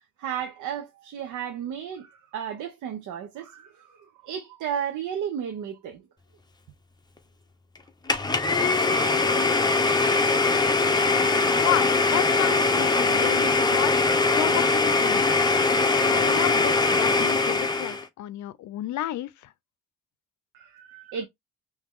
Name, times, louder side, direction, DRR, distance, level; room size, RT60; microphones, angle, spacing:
voice 1, 0.2-4.0 4.2-6.0 20.5-21.3, right 8 dB, 80° right, 0.8 m, -33 dB
Domestic sounds home sounds, 8.1-18.1, left 3 dB, 15° left, 0.7 m, -22 dB
voice 2, 11.6-13.9 14.3-15.5 16.1-19.3, left 14 dB, 70° left, 0.5 m, -31 dB
3.0 x 2.9 x 3.6 m
cardioid pair, 90°, 30 cm